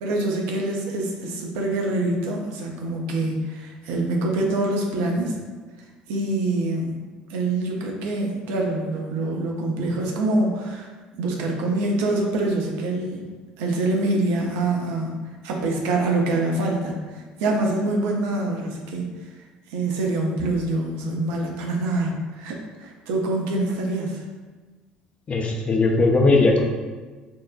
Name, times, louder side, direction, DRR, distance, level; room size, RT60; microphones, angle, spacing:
voice 1, 0.0-5.3 6.1-6.9 7.3-10.9 11.2-13.2 13.6-15.1 15.4-19.1 19.7-24.2, right 2 dB, 65° right, 0 dB, 0.5 m, -25 dB
voice 2, 25.3-26.6, left 3 dB, 35° left, 2 dB, 0.5 m, -18 dB
3.6 x 2.1 x 2.4 m, 1.3 s
hypercardioid pair, 60°, 4 cm